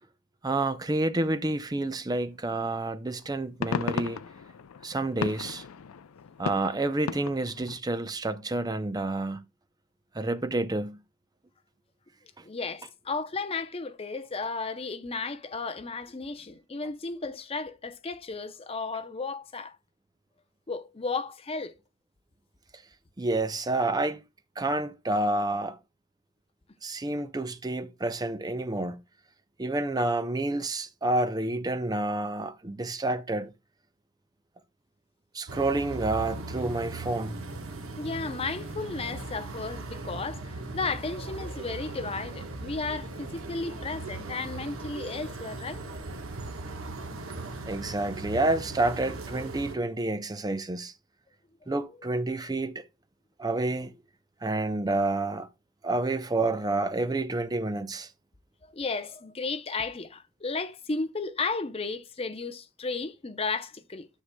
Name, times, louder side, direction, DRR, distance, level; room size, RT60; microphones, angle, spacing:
voice 1, 0.4-4.2 4.8-5.6 6.4-9.4 10.1-11.0 23.2-24.2 24.6-25.8 26.8-29.0 29.6-33.5 35.3-37.4 47.7-50.9 51.7-52.8 53.4-53.9 54.4-55.5 55.8-58.1, right 2 dB, 20° right, 0.5 m, -29 dB
sound 1, 2.5-2.7 3.2-7.8, left 6 dB, 80° left, 0.5 m, -36 dB
voice 2, 12.4-19.8 20.7-21.7 38.0-45.8 51.9-52.1 58.7-64.1, left 4 dB, 25° left, 0.6 m, -34 dB
sound 2, 35.5-49.8, right 2 dB, 70° right, 1.2 m, -38 dB
12.5 x 6.5 x 2.2 m
head